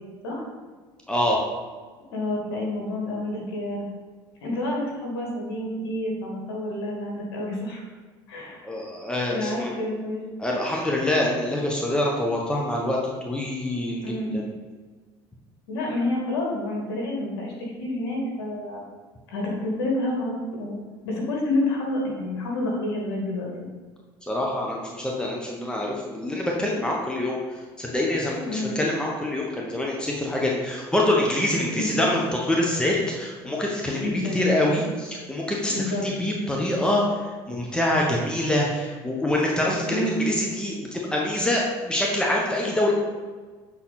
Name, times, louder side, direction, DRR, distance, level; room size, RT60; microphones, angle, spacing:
voice 1, 1.1-1.4 8.6-9.7 10.4-13.0 13.2-14.4 24.3-27.4 27.8-37.2 37.5-42.9, left 1 dB, 5° left, -2 dB, 1.2 m, -25 dB
voice 2, 2.1-3.9 4.4-7.8 8.3-8.7 9.3-10.3 14.0-14.5 15.7-18.8 19.3-20.3 20.6-20.8 21.0-23.7 28.4-28.8 31.7-32.1 34.0-34.5 35.7-36.1 39.8-40.2, left 1 dB, 85° left, -2 dB, 2.2 m, -29 dB
7.4 x 4.3 x 4.2 m, 1.4 s
hypercardioid pair, 80°, 12 cm